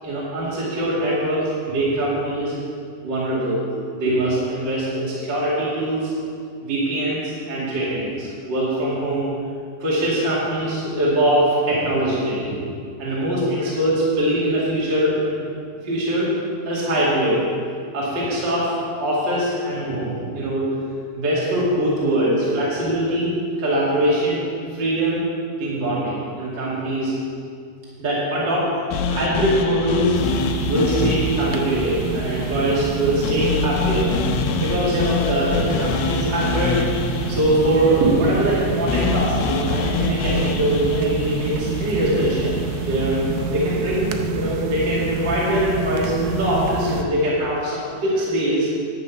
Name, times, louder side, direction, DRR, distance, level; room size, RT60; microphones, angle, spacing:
voice 1, 0.0-2.6 3.0-3.6 3.9-6.1 6.6-9.3 9.8-12.5 13.0-15.4 15.8-16.3 16.7-17.5 17.9-18.7 19.0-20.7 21.1-23.3 23.6-24.4 24.7-25.2 25.6-27.1 28.0-28.8 29.1-30.2 30.7-36.8 37.3-48.7, right 1 dB, 35° right, -8 dB, 2.4 m, -22 dB
sound 1, 28.9-43.1, left 5 dB, 85° left, 2.6 m, -27 dB
sound 2, 30.1-47.0, right 5 dB, 75° right, 2.3 m, -27 dB
11.5 x 8.3 x 5.8 m, 2.3 s
omnidirectional pair, 4.5 m